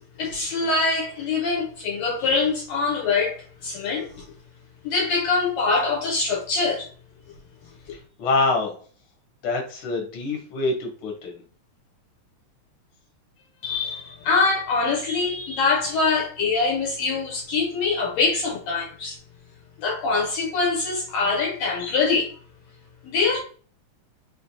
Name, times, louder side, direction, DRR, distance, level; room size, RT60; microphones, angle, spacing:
voice 1, 0.2-4.2 4.8-6.9 13.6-19.2 19.8-22.3 23.0-23.4, left 4 dB, 75° left, 1.8 m, -24 dB
voice 2, 7.9-8.8 9.4-11.4, left 3 dB, 55° left, 1.8 m, -26 dB
5.0 x 3.2 x 2.7 m
omnidirectional pair, 3.3 m